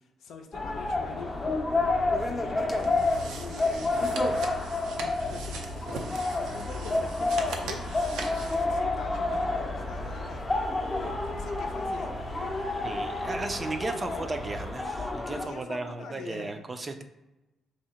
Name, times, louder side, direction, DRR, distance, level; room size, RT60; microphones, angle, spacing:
voice 1, 0.2-1.3 2.1-4.1 4.9-5.6 6.3-10.5 11.0-12.6 15.2-16.5, left 5 dB, 80° left, 3 dB, 0.5 m, -44 dB
sound 1, 0.5-15.5, left 2 dB, 25° left, 0.6 m, -30 dB
sound 2, 0.5-14.7, right 3 dB, 55° right, 0.7 m, -45 dB
sound 3, 2.7-8.6, right 4 dB, 85° right, 0.5 m, -41 dB
voice 2, 12.8-17.0, right 3 dB, 25° right, 6 dB, 0.4 m, -35 dB
2.8 x 2.7 x 4.3 m, 1.0 s
cardioid pair, 90°, 0 cm